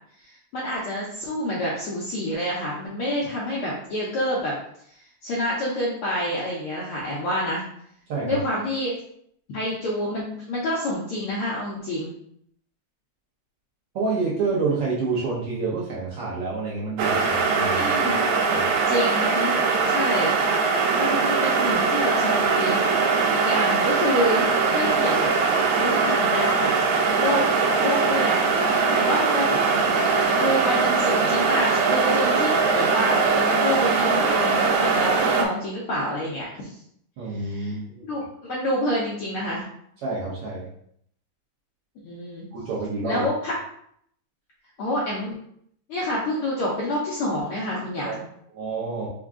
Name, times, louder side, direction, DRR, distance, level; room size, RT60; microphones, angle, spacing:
voice 1, 0.2-4.5 5.2-7.6 8.2-8.9 9.5-12.1 17.7-18.2 18.9-19.5 19.9-20.6 20.9-25.3 25.7-26.7 27.2-27.5 27.8-28.6 28.9-29.6 30.4-36.7 37.3-37.8 38.1-39.6 42.0-42.5 43.0-43.5 44.8-45.4 45.9-48.2, left 1 dB, 75° left, -5 dB, 1.3 m, -27 dB
voice 2, 13.9-18.2 18.4-18.7 37.2-38.0 40.0-40.7 42.5-43.2 48.0-48.1 48.5-49.1, right 3 dB, 65° right, -6 dB, 1.5 m, -28 dB
sound 1, 17.0-35.5, right 4 dB, 85° right, 2.0 m, -21 dB
4.8 x 2.3 x 3.6 m, 0.68 s
omnidirectional pair, 3.3 m